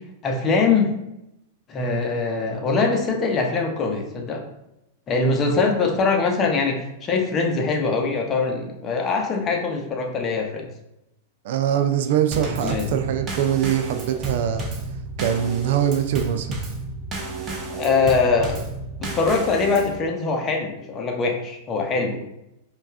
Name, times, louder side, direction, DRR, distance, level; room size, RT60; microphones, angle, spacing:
voice 1, 0.2-0.9 1.7-4.4 5.1-10.7 12.6-12.9 17.7-18.6 19.0-22.2, left 4 dB, 30° left, 2 dB, 0.8 m, -22 dB
voice 2, 11.4-14.7 15.2-16.6, right 9 dB, 60° right, 7 dB, 0.3 m, -23 dB
Drum kit / Snare drum / Bass drum, 12.3-20.0, right 3 dB, 25° right, 0.9 m, -32 dB
5.1 x 2.4 x 2.4 m, 0.85 s
figure-of-eight pair, 95°, 0 cm